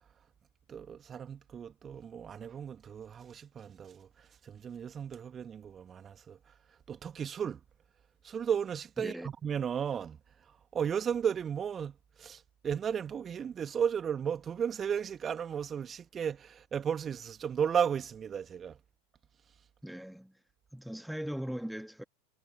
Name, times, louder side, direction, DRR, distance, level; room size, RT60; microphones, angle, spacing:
voice 1, 0.7-7.6 8.2-18.8, right 8 dB, 25° right, 2.5 m, -35 dB
voice 2, 19.8-20.3 20.7-22.0, equal, ahead, 1.8 m, -39 dB
figure-of-eight pair, 85°, 0 cm